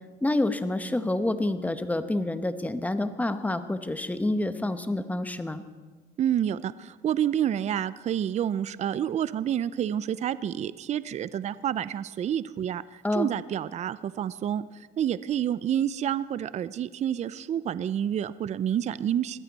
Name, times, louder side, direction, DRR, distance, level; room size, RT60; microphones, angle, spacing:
voice 1, 0.2-5.6 13.0-13.3, left 1 dB, 10° left, 10 dB, 1.0 m, -28 dB
voice 2, 6.2-14.6 15.0-19.4, right 10 dB, 40° right, 16 dB, 0.5 m, -28 dB
21.0 x 15.0 x 4.1 m, 1.4 s
cardioid pair, 110°, 17 cm